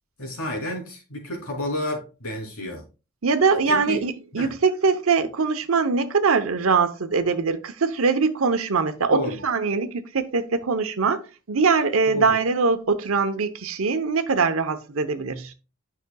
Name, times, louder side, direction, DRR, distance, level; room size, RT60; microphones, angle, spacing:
voice 1, 0.2-2.8 3.7-4.0 4.3-4.5 9.1-9.4 12.1-12.3, left 1 dB, 85° left, 3.1 m, -30 dB
voice 2, 3.2-11.2 11.5-15.5, right 4 dB, 75° right, 0.8 m, -22 dB
9.2 x 6.0 x 2.3 m
head